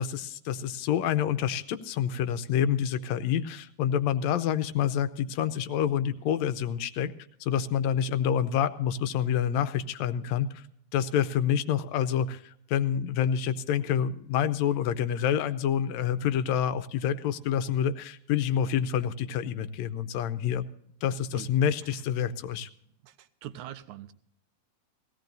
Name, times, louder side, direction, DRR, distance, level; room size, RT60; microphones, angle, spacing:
voice 1, 0.0-7.1 7.4-10.6 10.9-20.7 21.0-22.7, left 9 dB, 80° left, 12 dB, 1.9 m, -27 dB
voice 2, 23.0-24.1, right 11 dB, 85° right, 11 dB, 2.2 m, -43 dB
19.5 x 16.5 x 2.6 m, 0.70 s
omnidirectional pair, 3.3 m